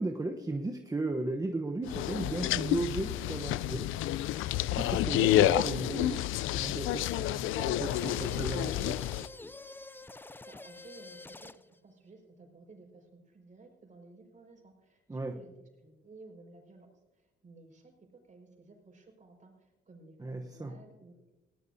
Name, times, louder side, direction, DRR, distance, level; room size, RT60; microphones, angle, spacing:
voice 1, 0.0-3.9 4.8-9.1 15.1-15.4 20.2-20.8, right 2 dB, 15° right, 0.9 m, -35 dB
sound 1, 1.9-9.3, left 14 dB, 85° left, 0.4 m, -29 dB
sound 2, 7.9-11.8, left 2 dB, 10° left, 0.5 m, -48 dB
voice 2, 10.1-11.5 11.8-15.5 15.8-16.9 17.1-21.3, right 3 dB, 40° right, 5.1 m, -55 dB
20.5 x 16.5 x 2.7 m
cardioid pair, 90°, 20 cm